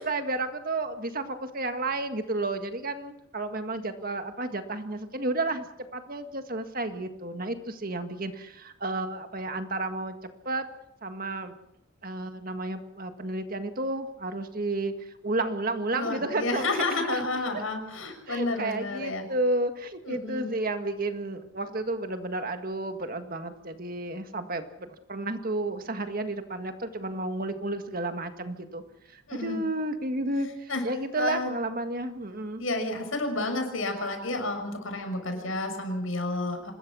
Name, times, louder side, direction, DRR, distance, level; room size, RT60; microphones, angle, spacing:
voice 1, 0.0-5.7 5.9-10.7 11.0-11.5 12.0-17.6 18.3-28.8 29.1-32.6, right 2 dB, 45° right, 7 dB, 1.8 m, -32 dB
voice 2, 15.9-19.3 20.1-20.5 29.3-29.6 30.7-30.8 31.2-31.5 32.6-36.7, left 2 dB, 75° left, 6 dB, 6.2 m, -30 dB
25.5 x 20.5 x 6.3 m, 0.82 s
head